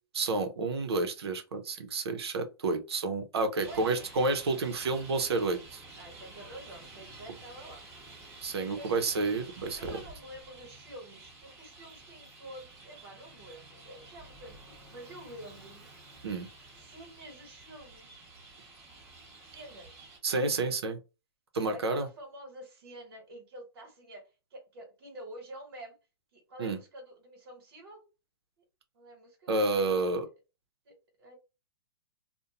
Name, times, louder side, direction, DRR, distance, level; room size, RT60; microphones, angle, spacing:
voice 1, 0.1-5.8 8.4-10.0 16.2-16.5 20.2-21.0 21.5-22.1 26.6-26.8 29.5-30.3, right 3 dB, 85° right, 0.7 m, -30 dB
Traffic noise roadway noise, 3.6-20.2, right 2 dB, 20° right, 1.1 m, -51 dB
voice 2, 3.6-4.1 6.0-7.9 8.7-9.1 9.8-15.9 16.8-18.3 19.4-20.1 20.4-20.8 21.5-26.0 26.3-28.0 28.9-30.1 30.8-31.3, right 1 dB, 70° right, 1.3 m, -48 dB
2.5 x 2.1 x 2.8 m
hypercardioid pair, 140°, 13 cm